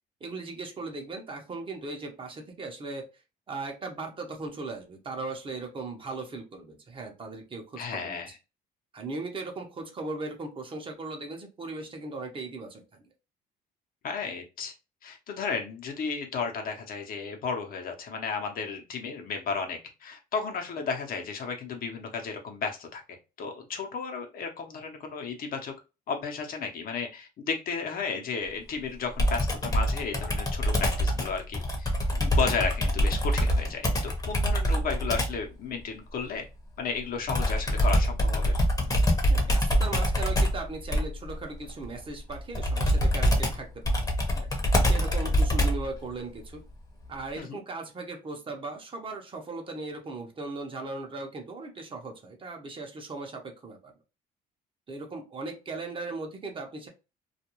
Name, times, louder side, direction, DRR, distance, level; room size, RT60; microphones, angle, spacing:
voice 1, 0.2-3.1 3.5-8.2 8.9-13.0 39.3-44.1 44.3-44.5 44.9-46.6 47.1-53.9 54.9-56.9, right 3 dB, 30° right, 3 dB, 0.7 m, -38 dB
voice 2, 7.8-8.3 14.0-14.7 15.0-23.0 23.4-25.7 26.1-33.9 34.2-36.4 36.8-38.6 47.4-47.6, left 5 dB, 60° left, 3 dB, 0.8 m, -33 dB
Computer keyboard, 29.2-35.4 37.3-45.9, equal, 20° left, 0.8 m, -25 dB
2.4 x 2.2 x 2.9 m, 0.28 s
cardioid pair, 110°, 17 cm